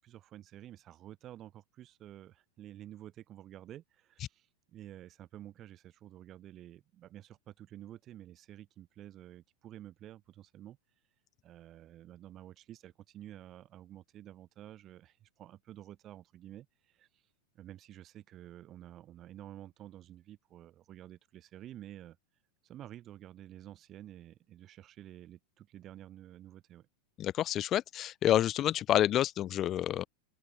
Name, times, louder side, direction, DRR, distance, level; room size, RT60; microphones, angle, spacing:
voice 1, 0.0-10.8 11.4-17.2 17.6-22.2 22.6-26.9, right 12 dB, 30° right, 5.4 m, -51 dB
voice 2, 27.2-30.1, left 12 dB, 30° left, 0.4 m, -28 dB
open air
figure-of-eight pair, 90°, 0 cm